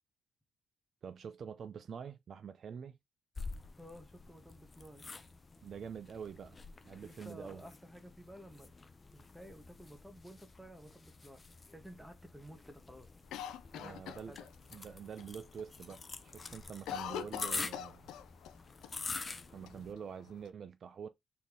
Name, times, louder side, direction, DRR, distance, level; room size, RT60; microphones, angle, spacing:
voice 1, 1.0-3.0 5.6-6.6 6.8-7.6 13.8-14.4 14.7-18.1 19.5-21.1, right 7 dB, 55° right, 0.4 m, -46 dB
sound 1, 3.4-19.9, left 3 dB, 25° left, 0.7 m, -47 dB
voice 2, 3.8-5.0 7.0-8.7 9.1-13.1 13.6-14.5, equal, 5° right, 1.3 m, -53 dB
Cough, 13.3-14.8 15.2-15.3 15.6-16.0 16.3-18.6 18.8-18.9 19.7-20.5, left 9 dB, 90° left, 0.4 m, -43 dB
4.3 x 3.5 x 3.0 m
cardioid pair, 90°, 0 cm